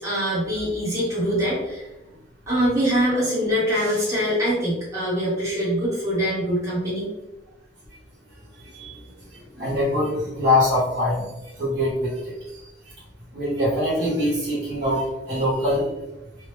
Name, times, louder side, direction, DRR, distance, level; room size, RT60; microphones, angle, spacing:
voice 1, 0.0-1.9 2.5-7.1, equal, 15° right, -10 dB, 1.0 m, -23 dB
voice 2, 8.3-12.6 13.3-15.8, left 1 dB, 65° right, -7 dB, 1.4 m, -24 dB
2.9 x 2.2 x 3.4 m, 0.98 s
head